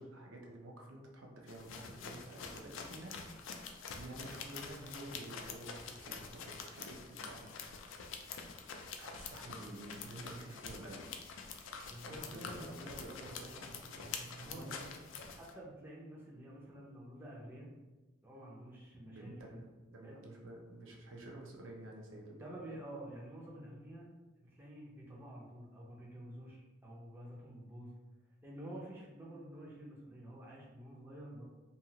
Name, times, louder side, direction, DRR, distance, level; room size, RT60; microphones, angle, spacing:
voice 1, 0.0-7.5 7.8-7.9 9.0-11.0 12.0-14.9 19.1-22.6, right 1 dB, 90° right, -1 dB, 0.6 m, -50 dB
sound 1, 1.5-15.5, left 5 dB, 75° left, 0.3 m, -47 dB
voice 2, 11.9-12.7 14.4-14.7 15.3-17.7 18.2-19.6 20.0-20.1 22.4-24.1 24.4-27.9 28.4-31.4, right 1 dB, 10° right, -4 dB, 0.5 m, -49 dB
2.7 x 2.4 x 2.8 m, 1.2 s
head